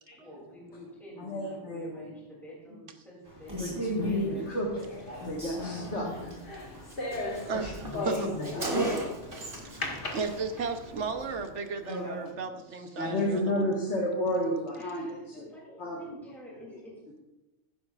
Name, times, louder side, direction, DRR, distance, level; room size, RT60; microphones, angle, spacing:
voice 1, 0.2-4.9 5.1-6.3 7.6-7.9 12.7-13.3 14.7-17.2, left 1 dB, ahead, -5 dB, 2.8 m, -49 dB
voice 2, 1.2-1.9 3.6-4.7 5.3-6.3 7.6-10.0 13.0-15.5 15.8-16.0, equal, 70° left, -3 dB, 1.9 m, -32 dB
Rain, 3.2-11.4, left 2 dB, 20° right, 3.8 m, -42 dB
sound 1, 4.8-9.1 9.8-10.9 11.4-11.5 11.9-12.3, left 1 dB, 50° left, 1.8 m, -37 dB
Car, 6.2-6.3 6.6-6.7 6.9-9.9 10.1-10.4, right 2 dB, 50° right, 2.1 m, -37 dB
voice 3, 7.4-8.3 10.1-13.7, right 5 dB, 80° right, 7 dB, 1.3 m, -35 dB
14.5 x 11.0 x 2.5 m, 1.0 s
omnidirectional pair, 1.2 m